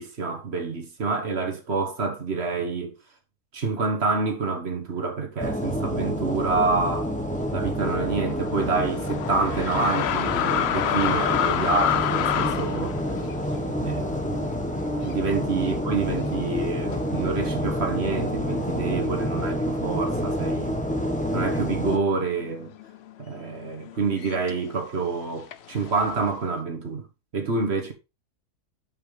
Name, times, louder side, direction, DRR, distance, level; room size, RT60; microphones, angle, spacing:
voice 1, 0.0-2.9 3.5-7.1 7.5-13.0 13.8-14.2 15.0-20.8 21.3-22.7 23.2-27.1 27.3-27.9, right 4 dB, 45° right, 1.6 m, -27 dB
sound 1, 5.4-22.0, equal, 5° left, 1.0 m, -28 dB
sound 2, 7.7-15.3 15.6-15.8 16.5-17.0 17.7-17.8 18.1-19.8 20.1-20.7 20.9-24.7 25.5-26.4, left 9 dB, 75° left, 0.6 m, -29 dB
7.2 x 5.6 x 3.3 m
omnidirectional pair, 1.7 m